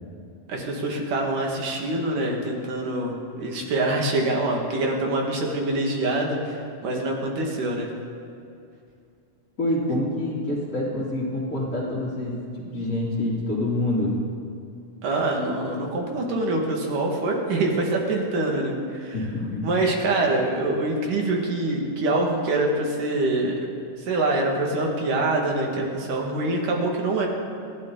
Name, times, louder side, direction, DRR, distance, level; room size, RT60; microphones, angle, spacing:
voice 1, 0.5-7.9 15.0-19.1 19.6-23.6 24.0-27.3, right 2 dB, 65° right, 0 dB, 3.5 m, -25 dB
voice 2, 9.6-12.4 12.7-14.1 19.1-19.7, left 1 dB, 20° left, -9 dB, 2.8 m, -26 dB
28.5 x 13.0 x 4.0 m, 2.5 s
omnidirectional pair, 4.1 m